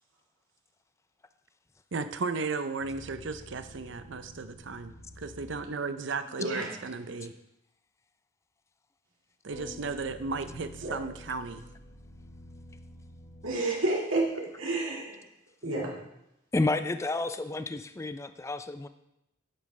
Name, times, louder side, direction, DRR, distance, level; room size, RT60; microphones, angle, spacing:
voice 1, 1.9-7.3 9.4-11.6, right 4 dB, 60° right, 10 dB, 0.6 m, -35 dB
sound 1, 2.8-5.9 9.5-14.1, left 1 dB, 60° left, 3.2 m, -49 dB
voice 2, 6.4-6.7 10.8-11.0 13.4-15.2 15.6-16.0, right 2 dB, 80° right, -2 dB, 2.0 m, -30 dB
voice 3, 16.5-18.9, left 2 dB, 15° left, 10 dB, 0.3 m, -30 dB
10.0 x 8.4 x 3.2 m, 0.85 s
head